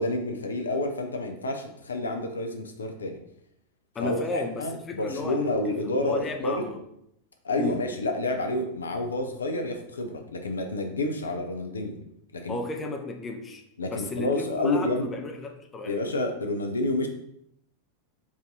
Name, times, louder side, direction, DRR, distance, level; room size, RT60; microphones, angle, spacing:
voice 1, 0.0-3.2 4.0-6.6 7.4-12.0 12.3-12.6 13.8-15.1 15.8-17.1, left 2 dB, 75° left, 4 dB, 0.5 m, -29 dB
voice 2, 3.9-5.4 5.6-6.8 7.6-7.8 12.5-16.0, left 2 dB, 20° left, 3 dB, 0.6 m, -34 dB
4.8 x 2.7 x 3.9 m, 0.75 s
figure-of-eight pair, 90°, 0 cm